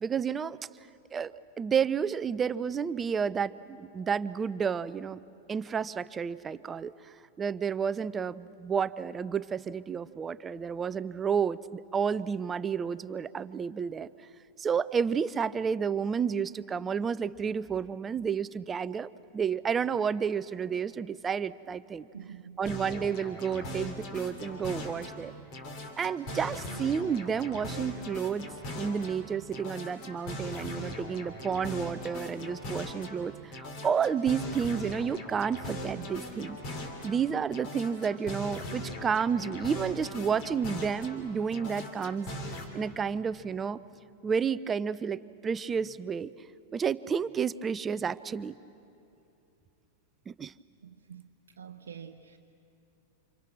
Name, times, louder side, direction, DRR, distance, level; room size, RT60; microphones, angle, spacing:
voice 1, 0.0-0.6 1.1-5.2 5.5-6.9 7.4-14.1 14.6-22.1 22.6-25.3 26.0-28.5 28.8-36.6 37.0-42.3 42.7-43.8 44.2-46.3 46.7-48.5 50.3-50.5, right 6 dB, 20° right, 17 dB, 0.5 m, -31 dB
voice 2, 22.1-22.6 50.8-51.3 51.6-52.4, right 8 dB, 65° right, 4 dB, 0.8 m, -46 dB
Ham on acid, 22.6-25.2 25.5-29.2 29.5-33.2 33.5-37.2 37.5-41.2 41.5-42.6, left 1 dB, 40° left, 3.3 m, -40 dB
29.5 x 27.0 x 6.2 m, 2.8 s
figure-of-eight pair, 90°, 0 cm